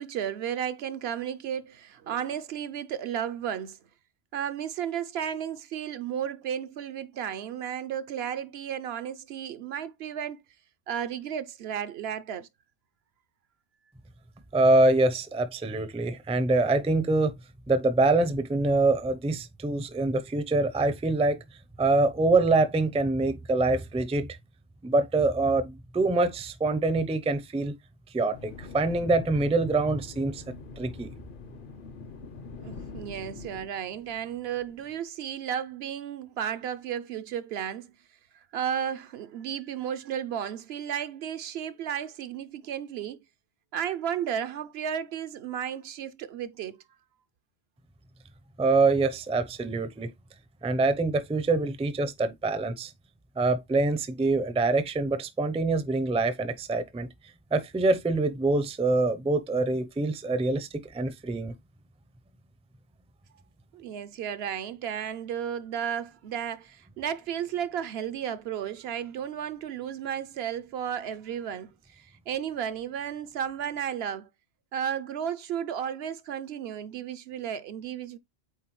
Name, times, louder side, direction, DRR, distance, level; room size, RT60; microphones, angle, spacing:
voice 1, 0.0-3.8 4.3-10.4 10.9-12.5 32.6-37.9 38.5-43.2 43.7-46.8 63.7-74.3 74.7-78.2, right 9 dB, 70° right, 0.8 m, -33 dB
voice 2, 14.5-17.3 17.7-21.4 21.8-24.4 24.8-27.7 28.1-30.4 30.8-31.1 48.6-50.1 50.6-52.9 53.4-57.1 57.5-61.5, right 2 dB, 10° right, 0.4 m, -25 dB
sound 1, 28.3-33.7, left 4 dB, 55° left, 0.8 m, -44 dB
8.2 x 3.8 x 3.0 m
omnidirectional pair, 1.1 m